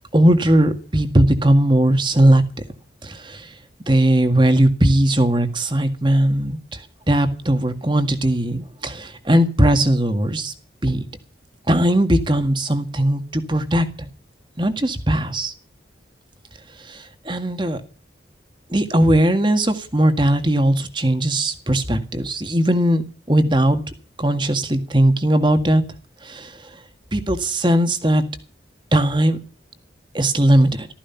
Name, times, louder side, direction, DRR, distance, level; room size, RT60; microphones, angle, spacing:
voice 1, 0.1-2.4 3.0-3.5 3.9-6.8 7.1-10.5 10.8-11.0 11.7-13.9 14.6-15.5 16.9-17.8 18.7-23.0 23.3-23.8 24.2-25.8 26.2-26.6 27.1-28.2 28.9-29.4 30.1-30.9, right 1 dB, 25° right, 1.8 m, -18 dB
14.5 x 14.0 x 5.8 m
head